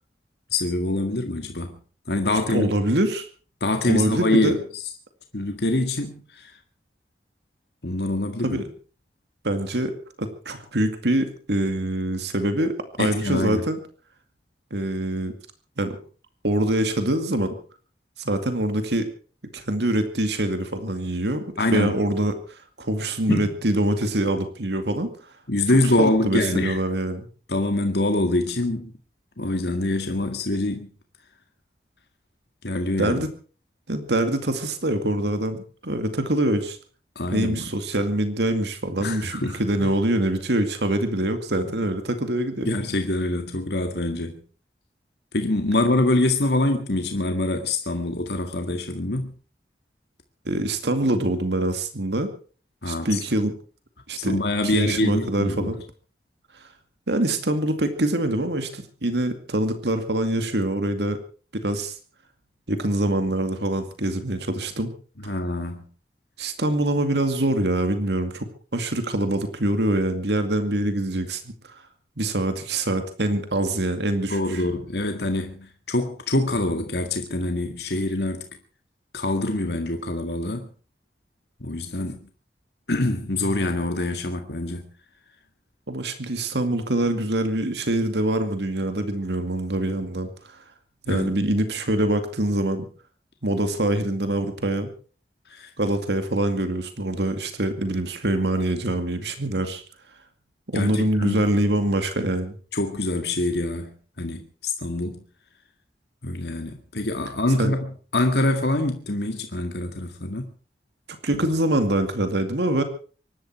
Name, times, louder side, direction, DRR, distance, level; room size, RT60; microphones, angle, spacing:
voice 1, 0.5-1.8 2.1-2.7 3.6-4.8 5.3-6.5 7.8-8.6 13.0-13.6 21.6-22.0 23.3-23.5 25.5-26.8 27.5-28.9 29.4-30.9 32.6-33.3 37.2-37.7 39.0-39.9 42.6-44.4 45.3-49.3 52.8-53.2 54.2-55.7 65.2-65.8 74.3-78.5 79.1-80.7 81.6-82.2 82.9-84.9 91.1-91.3 95.5-95.7 100.7-101.4 102.7-105.2 106.2-110.5, left 2 dB, 75° left, 1.9 m, -25 dB
voice 2, 2.5-3.3 3.9-4.5 8.4-8.6 9.4-9.9 10.2-13.8 14.7-15.3 15.8-16.0 16.4-17.5 18.2-19.1 19.5-25.1 26.0-27.3 33.0-33.3 33.9-36.8 37.3-42.7 50.5-52.3 52.9-53.5 54.1-54.4 54.6-55.8 57.1-61.2 61.5-61.9 62.7-64.9 65.2-65.3 66.4-68.5 68.7-71.4 71.7-71.8 72.2-74.6 85.9-90.3 91.1-92.8 93.4-94.9 95.8-99.8 100.7-102.6 107.6-107.7 111.2-112.8, right 1 dB, 80° right, 2.3 m, -24 dB
24.5 x 12.0 x 4.7 m
head